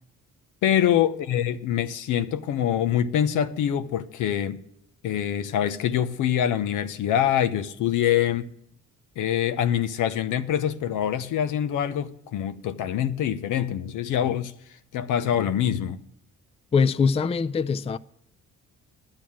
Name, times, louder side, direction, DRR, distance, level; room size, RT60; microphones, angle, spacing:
voice 1, 0.6-4.6 5.0-8.5 9.2-14.5 14.9-16.0, left 10 dB, 85° left, 0.8 m, -25 dB
voice 2, 16.7-18.0, left 5 dB, 20° left, 0.4 m, -22 dB
10.5 x 7.8 x 8.6 m
cardioid pair, 90°, 30 cm